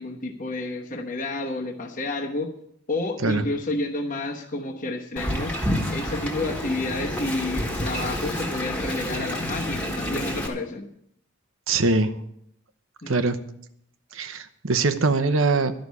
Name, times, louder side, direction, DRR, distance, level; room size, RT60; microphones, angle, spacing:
voice 1, 0.0-2.5 2.9-5.5 5.9-10.9 13.0-13.4, left 2 dB, 40° left, -1 dB, 1.2 m, -30 dB
Wind, 5.2-10.5, equal, 5° left, 1.7 m, -29 dB
voice 2, 11.7-12.1 13.1-13.4 14.1-15.7, right 3 dB, 75° right, 11 dB, 0.9 m, -22 dB
12.0 x 6.4 x 9.5 m, 0.72 s
head